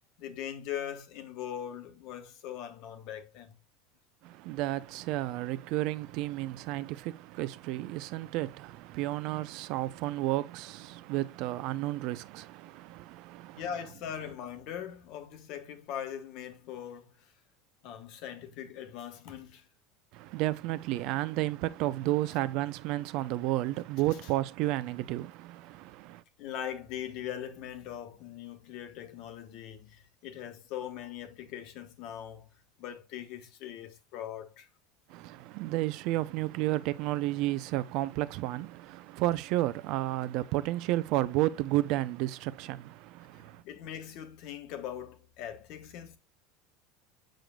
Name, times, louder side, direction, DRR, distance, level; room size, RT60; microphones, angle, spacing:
voice 1, 0.2-3.6 13.6-17.3 17.8-19.7 26.4-32.5 32.8-34.7 43.3-46.2, left 9 dB, 50° left, 1.4 m, -41 dB
voice 2, 4.2-13.6 20.1-26.2 35.1-43.6, right 16 dB, 50° right, 0.6 m, -32 dB
7.6 x 6.8 x 2.3 m
cardioid pair, 165°, 0 cm